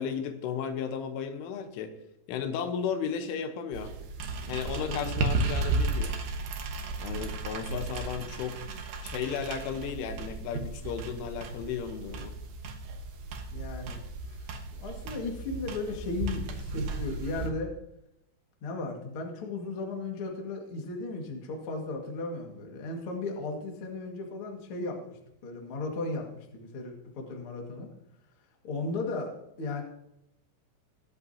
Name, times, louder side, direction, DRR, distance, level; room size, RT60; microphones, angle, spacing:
voice 1, 0.0-1.9 2.3-3.9 4.5-6.2 7.0-8.6 9.0-12.3, left 7 dB, 85° left, 8 dB, 3.5 m, -34 dB
sound 1, 3.7-17.5, right 3 dB, 90° right, 1.8 m, -34 dB
voice 2, 13.5-14.0 14.3-14.4 14.8-17.7 18.6-25.0 25.4-27.9 28.6-29.8, left 3 dB, 55° left, 1 dB, 1.5 m, -36 dB
21.5 x 8.3 x 2.8 m, 0.82 s
omnidirectional pair, 5.6 m